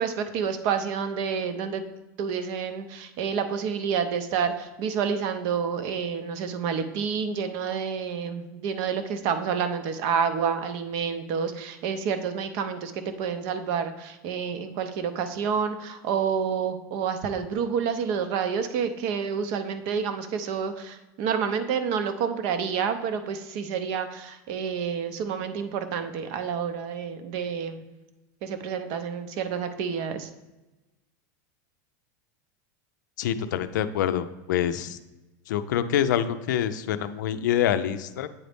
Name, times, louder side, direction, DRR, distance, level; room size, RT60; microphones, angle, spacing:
voice 1, 0.0-1.8 2.2-27.8 28.4-30.3, right 6 dB, 45° right, 9 dB, 0.6 m, -29 dB
voice 2, 33.2-35.0 35.5-38.3, left 10 dB, 90° left, 11 dB, 0.4 m, -26 dB
8.5 x 4.0 x 3.4 m, 1.1 s
supercardioid pair, 155°, 10 cm